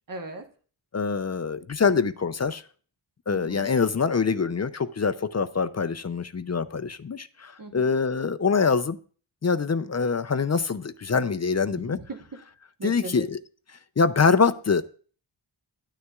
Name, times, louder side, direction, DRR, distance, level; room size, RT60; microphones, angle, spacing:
voice 1, 0.1-0.4 3.3-3.7 7.6-8.0 11.7-12.4 12.8-13.3, right 2 dB, 40° right, 1.2 m, -39 dB
voice 2, 0.9-2.6 3.3-9.0 9.4-12.0 12.8-13.4 14.0-14.8, left 5 dB, 35° left, 0.5 m, -24 dB
11.0 x 9.5 x 2.3 m
wide cardioid pair, 55°, 49 cm